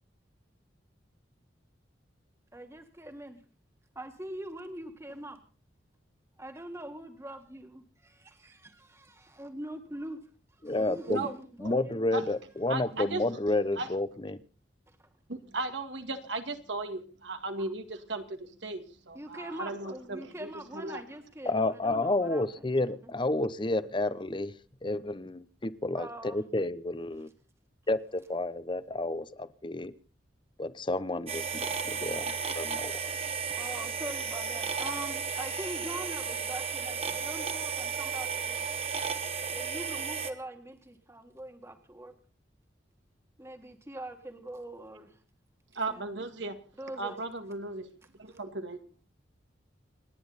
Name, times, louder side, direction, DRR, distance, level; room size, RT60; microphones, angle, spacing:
voice 1, 2.5-3.4 4.0-5.4 6.4-10.2 10.6-12.1 15.0-15.1 19.1-22.7 23.0-23.1 26.0-26.4 27.1-27.3 33.6-38.7 39.5-42.1 43.4-45.2 45.9-46.1 46.8-47.2, right 1 dB, 15° right, 5 dB, 1.8 m, -43 dB
voice 2, 10.6-11.3 11.6-14.4 21.5-24.5 24.8-27.3 27.9-29.9 30.6-33.0, left 2 dB, 25° left, 14 dB, 0.8 m, -30 dB
voice 3, 12.7-13.2 13.8-13.9 15.3-21.0 45.7-46.6 47.0-47.9 48.2-48.8, right 2 dB, 80° right, 7 dB, 2.1 m, -36 dB
sound 1, 31.3-40.3, right 6 dB, 30° right, 1.5 m, -34 dB
29.0 x 10.0 x 4.1 m, 0.37 s
head